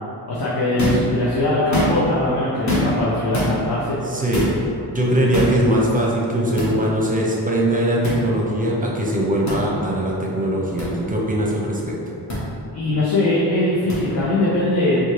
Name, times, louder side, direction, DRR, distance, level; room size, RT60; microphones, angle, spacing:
voice 1, 0.3-4.0 12.7-15.0, left 1 dB, 65° left, -8 dB, 0.8 m, -21 dB
sound 1, 0.8-1.1 1.6-2.1 2.7-3.0 3.3-3.5 4.3-4.6 5.3-5.6 6.6-6.7 8.0-8.2 9.4-9.6 10.8-10.9 12.3-12.4 13.9-14.0, left 1 dB, 45° left, 1.3 m, -23 dB
voice 2, 4.1-4.5 4.9-12.0, right 1 dB, 20° right, -3 dB, 0.7 m, -21 dB
4.2 x 2.3 x 3.2 m, 2.6 s
cardioid pair, 65°, 41 cm